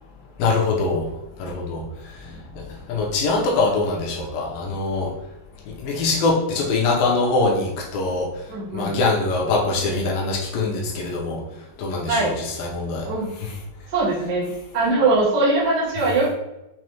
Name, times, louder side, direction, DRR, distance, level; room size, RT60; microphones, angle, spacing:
voice 1, 0.4-1.0 1.4-1.8 2.9-5.1 5.8-8.3 8.7-11.4 11.8-13.1, left 3 dB, 75° left, -2 dB, 2.3 m, -23 dB
voice 2, 8.5-9.0 12.1-12.4 13.0-13.3 13.9-16.3, right 2 dB, 80° right, -7 dB, 0.9 m, -21 dB
6.4 x 2.3 x 2.9 m, 0.93 s
omnidirectional pair, 4.5 m